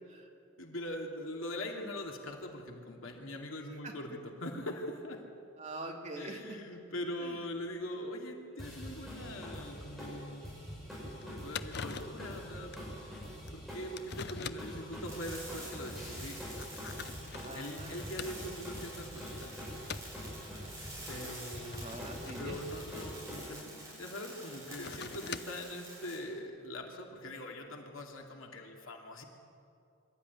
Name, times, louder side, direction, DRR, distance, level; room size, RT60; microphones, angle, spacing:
voice 1, 0.6-5.2 6.1-10.5 11.0-13.2 13.5-17.2 17.5-19.6 21.1-21.9 22.4-29.2, left 1 dB, 85° left, 1 dB, 2.7 m, -42 dB
voice 2, 5.6-6.4 7.2-7.4 17.3-18.1 21.7-22.6, right 2 dB, 35° right, 1 dB, 2.6 m, -44 dB
sound 1, 8.6-23.4, equal, ahead, 6.7 m, -45 dB
sound 2, 10.4-10.5 10.9-11.0 11.2-11.3 11.5-12.2 12.7-12.9 13.5-13.6 14.0-14.8 15.6-15.7 16.4-18.7 19.1-19.4 19.8-20.2 21.1-23.6 24.5-25.7, left 6 dB, 55° left, 0.6 m, -44 dB
sound 3, 15.1-26.1, right 1 dB, 15° right, 7.5 m, -48 dB
24.5 x 13.5 x 9.7 m, 2.5 s
head